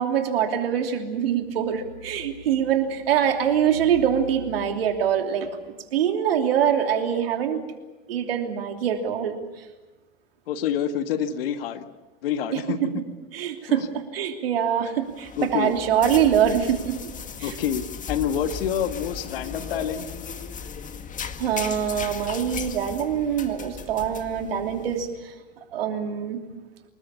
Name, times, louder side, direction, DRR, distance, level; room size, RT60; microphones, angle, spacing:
voice 1, 0.0-7.6 8.1-9.3 12.5-12.9 13.3-17.1 17.4-17.6 21.4-25.3 25.7-26.4, right 9 dB, 80° right, 4 dB, 3.1 m, -24 dB
voice 2, 10.5-11.8 12.2-12.9 13.7-13.9 15.4-15.7 17.4-20.1, left 9 dB, 75° left, 9 dB, 1.8 m, -27 dB
sound 1, 15.1-25.1, left 6 dB, 25° left, 1.9 m, -37 dB
25.5 x 21.0 x 7.2 m, 1.2 s
hypercardioid pair, 100°, 29 cm